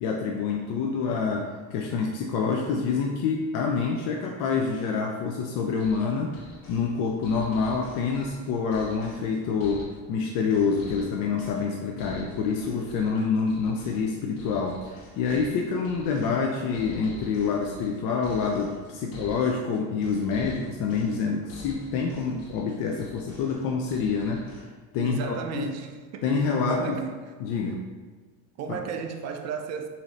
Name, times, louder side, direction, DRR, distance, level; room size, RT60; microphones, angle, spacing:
voice 1, 0.0-25.7 26.2-27.0 27.4-27.8 28.7-28.8, left 5 dB, 55° left, 0 dB, 0.5 m, -27 dB
sound 1, 5.8-24.6, left 1 dB, 85° left, 1.0 m, -46 dB
voice 2, 25.0-26.3 26.7-27.3 28.6-29.9, right 6 dB, 40° right, 5 dB, 0.5 m, -34 dB
3.7 x 2.8 x 3.1 m, 1.4 s
supercardioid pair, 105°, 41 cm